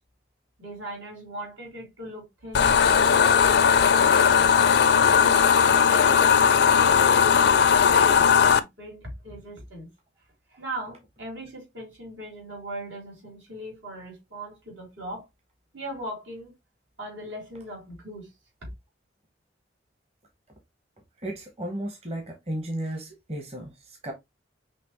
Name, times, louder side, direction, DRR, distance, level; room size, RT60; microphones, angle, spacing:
voice 1, 0.6-3.3 3.8-4.5 4.9-9.9 10.5-15.3 15.7-16.5 17.0-18.3, right 1 dB, 85° right, 3.6 m, -39 dB
sound 1, 2.5-8.6, left 7 dB, 65° left, 0.4 m, -18 dB
voice 2, 21.2-24.1, right 1 dB, 35° right, 1.0 m, -34 dB
6.0 x 2.9 x 3.0 m
head